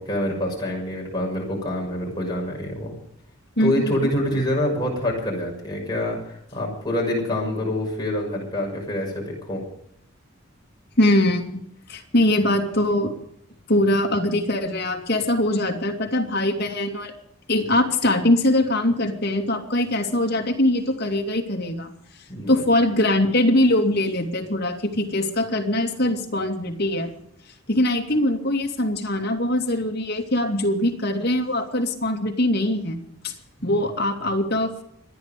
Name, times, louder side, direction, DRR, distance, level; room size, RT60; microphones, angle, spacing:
voice 1, 0.0-2.9 3.6-9.6 22.3-22.6 33.6-33.7, left 1 dB, 20° left, -1 dB, 6.5 m, -26 dB
voice 2, 3.6-3.9 11.0-11.6 11.9-13.1 13.7-17.1 17.5-21.9 22.5-27.1 27.7-33.0 33.2-33.3 33.6-34.7, left 1 dB, 50° left, 2 dB, 2.6 m, -22 dB
26.0 x 10.0 x 5.2 m, 0.71 s
head